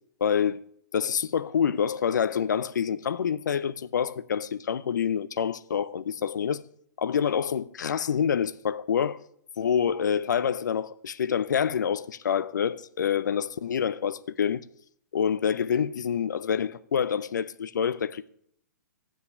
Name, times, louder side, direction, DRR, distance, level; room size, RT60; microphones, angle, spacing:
voice 1, 0.2-0.6 0.9-6.6 7.0-9.2 9.6-14.6 15.1-18.3, left 7 dB, 75° left, 0.5 m, -27 dB
7.6 x 5.9 x 6.6 m
hypercardioid pair, 125°, 10 cm